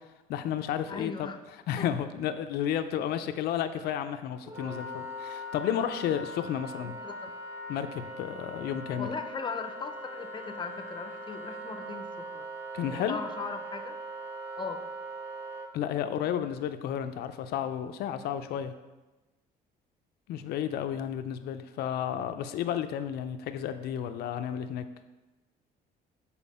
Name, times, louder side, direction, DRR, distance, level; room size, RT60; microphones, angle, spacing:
voice 1, 0.3-1.3 1.7-6.9 7.7-9.1 12.7-13.2 15.7-18.7 20.3-24.8, left 9 dB, 70° left, 9 dB, 0.5 m, -32 dB
voice 2, 0.9-1.4 1.8-1.9 7.0-7.3 9.0-12.5 12.9-14.0 14.6-14.8, left 5 dB, 25° left, 7 dB, 0.6 m, -38 dB
Wind instrument woodwind instrument, 4.5-15.7, right 1 dB, 15° right, 0.8 m, -41 dB
7.2 x 4.3 x 4.2 m, 1.1 s
cardioid pair, 110°, 17 cm